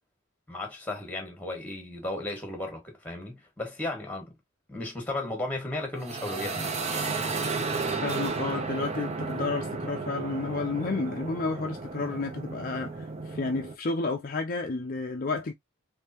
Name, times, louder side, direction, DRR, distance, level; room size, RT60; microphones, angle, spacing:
voice 1, 0.5-4.3 4.7-6.8, left 2 dB, 5° left, 1.5 m, -35 dB
sound 1, 6.0-13.7, right 4 dB, 30° right, 0.6 m, -33 dB
voice 2, 8.0-15.5, left 3 dB, 45° left, 0.4 m, -31 dB
3.6 x 3.3 x 2.8 m
head